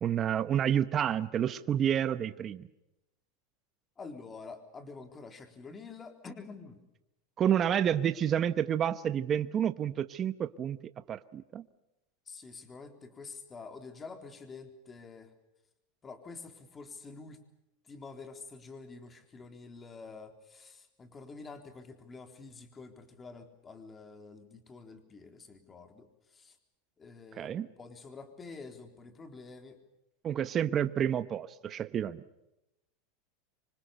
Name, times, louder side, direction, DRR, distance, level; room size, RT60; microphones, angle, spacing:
voice 1, 0.0-2.7 7.4-10.8 11.1-11.6 27.3-27.7 30.2-32.2, right 9 dB, 30° right, 12 dB, 1.0 m, -29 dB
voice 2, 4.0-6.8 12.3-15.3 16.0-17.4 17.9-26.1 26.3-26.6 27.0-29.8, left 4 dB, 20° left, 7 dB, 3.8 m, -48 dB
26.5 x 25.0 x 6.7 m, 0.88 s
supercardioid pair, 130°, 0 cm